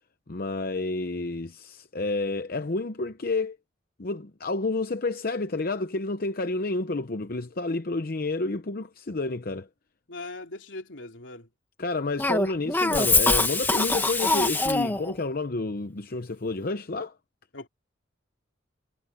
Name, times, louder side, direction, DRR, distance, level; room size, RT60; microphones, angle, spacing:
voice 1, 0.3-3.6 4.0-9.7 11.8-17.1, left 3 dB, 50° left, 0.8 m, -30 dB
voice 2, 10.1-11.5 17.5-17.7, left 2 dB, 75° left, 3.4 m, -40 dB
Cough, 12.2-15.1, left 3 dB, 10° left, 1.4 m, -23 dB
head